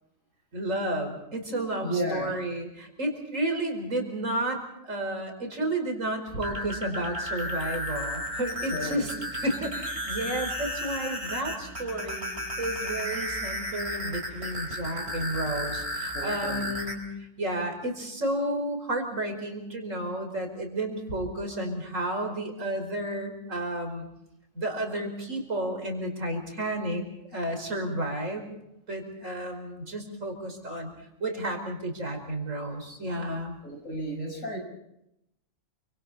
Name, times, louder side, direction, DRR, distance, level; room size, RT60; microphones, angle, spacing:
voice 1, 0.5-17.0 17.4-24.1 24.5-27.0 27.3-28.5 28.9-30.9 31.2-33.6, right 1 dB, 70° right, 4 dB, 5.4 m, -32 dB
voice 2, 1.5-2.4 8.7-9.0 16.1-16.7 33.6-34.6, right 1 dB, 75° left, 2 dB, 6.6 m, -33 dB
sound 1, 6.3-16.9, equal, 50° right, 5.1 m, -34 dB
29.0 x 26.0 x 4.3 m, 0.83 s
omnidirectional pair, 1.4 m